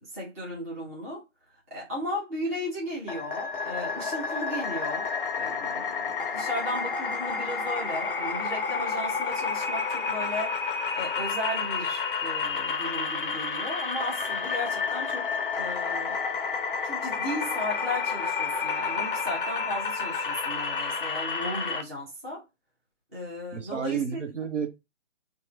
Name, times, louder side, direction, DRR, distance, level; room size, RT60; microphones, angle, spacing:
voice 1, 0.0-1.2 1.7-5.1 5.4-15.3 15.6-16.2 16.8-22.4 23.1-24.2, left 1 dB, 15° right, 0.5 m, -35 dB
sound 1, 3.1-21.8, left 5 dB, 45° left, 0.4 m, -30 dB
voice 2, 23.5-24.7, right 7 dB, 70° right, 0.9 m, -30 dB
2.9 x 2.2 x 3.2 m
figure-of-eight pair, 145°, 37 cm